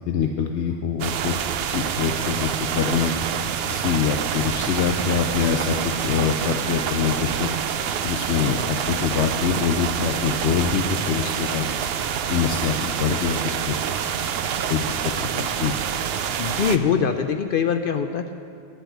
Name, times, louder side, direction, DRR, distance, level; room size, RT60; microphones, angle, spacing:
voice 1, 0.0-1.3 1.7-3.1 3.7-7.5 8.0-11.7 12.3-13.4 13.7-13.8 14.7-14.8 15.2-15.7, left 7 dB, 85° left, 4 dB, 0.9 m, -24 dB
sound 1, 1.0-16.8, right 8 dB, 70° right, 0.8 m, -27 dB
voice 2, 16.4-18.3, left 7 dB, 60° left, 7 dB, 0.7 m, -23 dB
10.5 x 8.0 x 7.8 m, 2.3 s
omnidirectional pair, 1.1 m